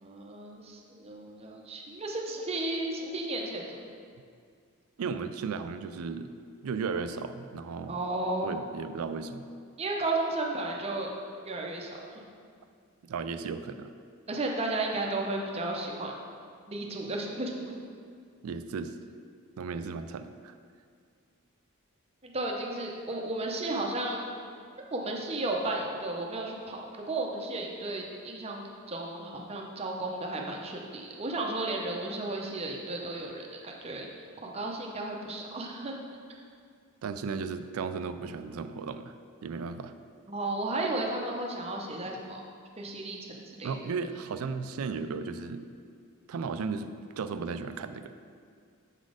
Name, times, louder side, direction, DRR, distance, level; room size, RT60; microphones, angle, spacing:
voice 1, 0.0-3.8 7.9-8.5 9.8-11.1 11.4-12.2 14.3-16.1 16.7-17.7 22.2-24.3 24.9-26.8 27.1-34.1 34.4-35.9 40.3-42.4 42.8-43.2 43.6-43.7, right 2 dB, 25° right, 0 dB, 0.6 m, -33 dB
voice 2, 5.0-6.3 6.6-8.0 8.4-9.5 13.0-13.9 18.4-18.9 19.6-20.5 37.0-39.1 39.4-39.9 43.6-45.7 46.3-48.1, right 5 dB, 75° right, 10 dB, 0.4 m, -35 dB
7.3 x 4.1 x 4.9 m, 2.2 s
head